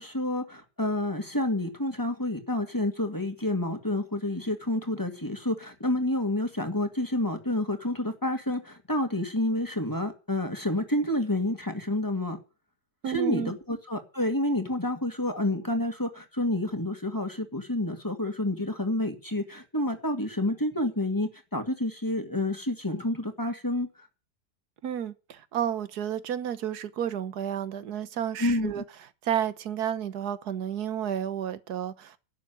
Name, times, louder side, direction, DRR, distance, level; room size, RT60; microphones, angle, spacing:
voice 1, 0.0-12.4 13.1-23.9 28.4-28.8, left 1 dB, 10° left, 2.2 m, -29 dB
voice 2, 13.0-13.6 24.8-28.8 29.2-32.2, right 9 dB, 70° right, 1.6 m, -31 dB
12.0 x 7.3 x 9.4 m
omnidirectional pair, 1.8 m